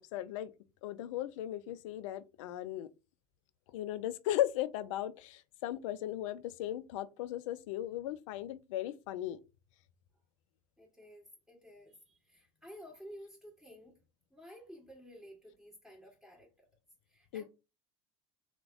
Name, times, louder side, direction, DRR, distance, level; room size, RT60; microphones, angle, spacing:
voice 1, 0.1-0.5 0.8-2.9 3.7-9.4 17.3-17.4, left 13 dB, 75° left, 0.4 m, -37 dB
voice 2, 10.8-14.0 14.3-16.5 17.1-17.4, equal, ahead, 2.1 m, -53 dB
3.4 x 2.2 x 3.3 m
hypercardioid pair, 90°, 16 cm